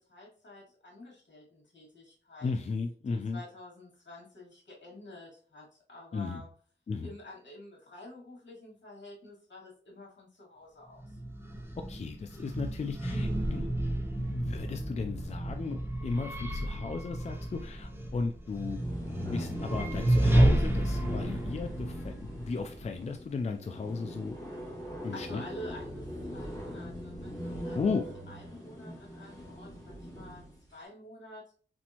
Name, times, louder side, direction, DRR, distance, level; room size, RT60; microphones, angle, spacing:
voice 1, 0.0-2.5 3.1-6.5 7.0-11.2 25.1-26.1 26.3-28.0 28.3-30.4 30.7-31.5, left 1 dB, 75° left, -3 dB, 2.2 m, -49 dB
voice 2, 2.4-3.4 6.1-6.4 6.9-7.1 11.9-13.7 14.3-18.8 19.3-24.4 25.0-25.4 27.7-28.0, left 4 dB, 35° left, 5 dB, 0.4 m, -35 dB
sound 1, 11.0-23.1, right 1 dB, 10° right, 0.8 m, -31 dB
sound 2, 18.5-30.6, equal, 20° left, 1.8 m, -40 dB
4.3 x 4.3 x 2.9 m, 0.43 s
wide cardioid pair, 120°, 19 cm